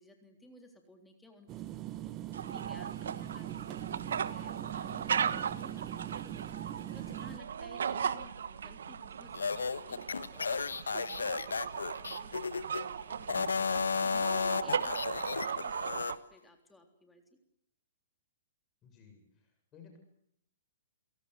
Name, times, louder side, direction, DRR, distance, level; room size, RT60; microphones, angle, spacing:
voice 1, 0.0-2.9 3.2-17.2, left 1 dB, 5° left, 4 dB, 3.6 m, -58 dB
sound 1, 1.5-7.4, right 13 dB, 30° right, 1.4 m, -41 dB
sound 2, 2.3-16.2, right 7 dB, 70° right, 1.3 m, -37 dB
sound 3, 9.3-12.8 13.2-16.1, left 5 dB, 80° left, 1.2 m, -33 dB
voice 2, 18.8-20.0, left 6 dB, 25° left, 4 dB, 7.4 m, -57 dB
30.0 x 18.0 x 8.4 m, 0.72 s
hypercardioid pair, 120°, 0 cm